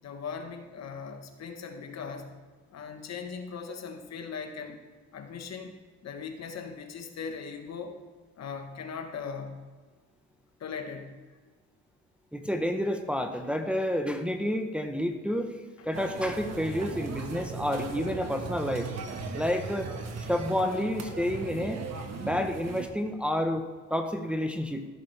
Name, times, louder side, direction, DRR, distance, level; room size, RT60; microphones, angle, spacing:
voice 1, 0.0-2.4 2.7-4.8 5.1-5.7 6.0-8.0 8.4-9.7 10.6-11.2, left 5 dB, 60° left, 6 dB, 1.3 m, -39 dB
voice 2, 12.3-15.6 15.8-18.9 19.3-19.9 20.3-21.8 22.2-24.9, left 1 dB, 5° right, 5 dB, 0.9 m, -29 dB
sound 1, 15.9-22.9, right 4 dB, 60° right, 1.4 m, -38 dB
14.5 x 6.8 x 3.3 m, 1.4 s
cardioid pair, 90°, 30 cm